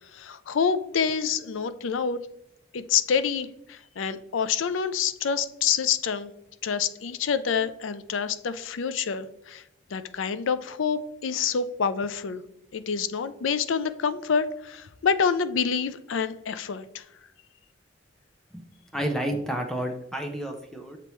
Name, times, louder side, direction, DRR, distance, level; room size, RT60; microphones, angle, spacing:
voice 1, 0.1-2.2 2.7-6.3 6.6-9.6 9.9-12.4 12.7-17.0, left 6 dB, 75° left, 13 dB, 0.4 m, -27 dB
voice 2, 18.9-21.0, right 1 dB, 5° left, 3 dB, 0.6 m, -30 dB
6.8 x 4.4 x 3.1 m, 0.81 s
head